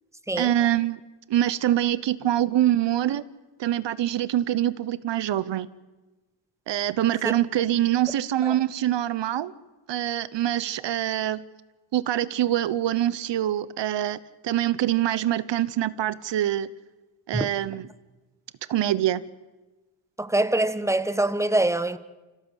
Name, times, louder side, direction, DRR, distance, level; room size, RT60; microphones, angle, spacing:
voice 1, 0.4-1.0 1.3-3.2 3.6-5.7 6.7-9.5 9.9-11.4 11.9-16.7 17.3-17.9 18.7-19.2, right 12 dB, 70° right, 1.0 m, -24 dB
voice 2, 20.2-22.0, right 1 dB, 5° right, 1.2 m, -24 dB
25.5 x 16.5 x 8.1 m
cardioid pair, 60°, 45 cm